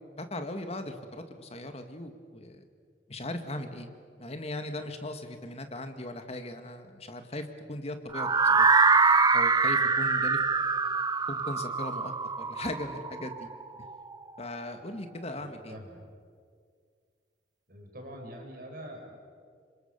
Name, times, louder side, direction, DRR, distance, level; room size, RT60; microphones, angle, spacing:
voice 1, 0.2-2.6 3.1-3.9 4.2-8.7 9.3-10.4 11.3-13.5 13.8-13.9 14.4-15.8, left 1 dB, 35° left, 7 dB, 1.9 m, -38 dB
sound 1, 8.1-14.1, right 4 dB, 20° right, 0.7 m, -24 dB
voice 2, 15.4-16.0 17.7-19.2, equal, 55° right, 2 dB, 5.4 m, -44 dB
27.5 x 25.0 x 6.8 m, 2.1 s
head